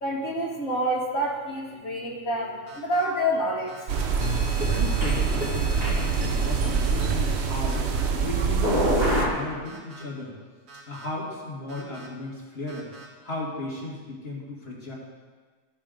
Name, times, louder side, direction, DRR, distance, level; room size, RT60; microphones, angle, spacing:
voice 1, 0.0-3.9, equal, 60° left, -2 dB, 1.9 m, -28 dB
sound 1, 2.7-3.0 3.7-4.1 4.7-5.1 5.7-6.1 6.7-7.1 7.7-8.1 8.7-9.0 9.6-10.0 10.7-11.1 11.7-12.1 12.7-13.1, right 4 dB, 85° right, 2.4 m, -46 dB
sound 2, 3.9-9.3, right 5 dB, 55° right, 0.8 m, -25 dB
sound 3, 4.2-7.5 8.6-9.3, equal, 30° right, 2.2 m, -29 dB
voice 2, 4.7-7.9 8.2-10.3 10.9-15.0, left 2 dB, 40° left, -5 dB, 2.0 m, -35 dB
14.0 x 6.0 x 3.8 m, 1.5 s
omnidirectional pair, 1.6 m